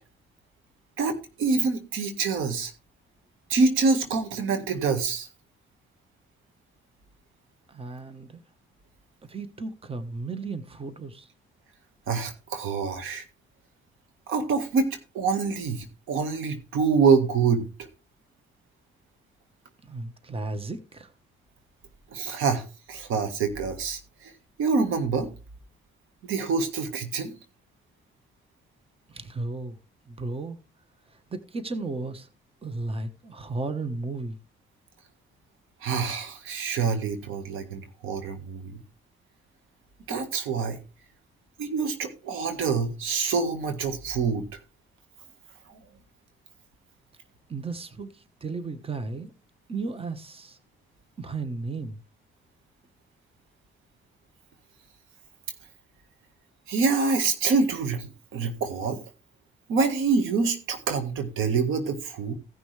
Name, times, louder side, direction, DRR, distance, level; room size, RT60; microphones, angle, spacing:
voice 1, 1.0-2.7 3.5-5.3 12.1-13.3 14.3-17.9 22.1-24.3 24.6-25.3 26.2-27.3 35.8-38.8 40.1-40.8 41.6-44.6 45.7-45.8 56.7-59.0 59.7-62.3, right 5 dB, 90° right, 1.7 m, -26 dB
voice 2, 7.7-8.4 9.2-11.3 19.8-21.1 29.1-29.8 30.1-30.6 31.1-32.3 32.6-34.4 47.5-49.3 49.7-50.6 51.2-52.0, right 3 dB, 30° right, 1.3 m, -34 dB
16.5 x 6.1 x 3.3 m
cardioid pair, 90°, 20 cm